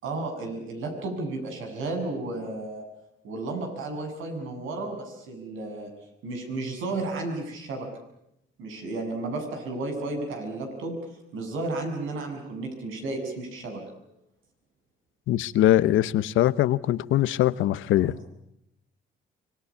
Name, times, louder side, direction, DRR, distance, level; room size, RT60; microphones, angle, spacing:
voice 1, 0.0-2.9 3.2-5.9 6.2-7.9 8.6-11.0 11.3-13.8 18.0-18.1, right 2 dB, 85° right, 7.2 m, -33 dB
voice 2, 15.3-18.1, left 13 dB, 85° left, 1.0 m, -22 dB
25.5 x 22.5 x 8.4 m
cardioid pair, 90°, 20 cm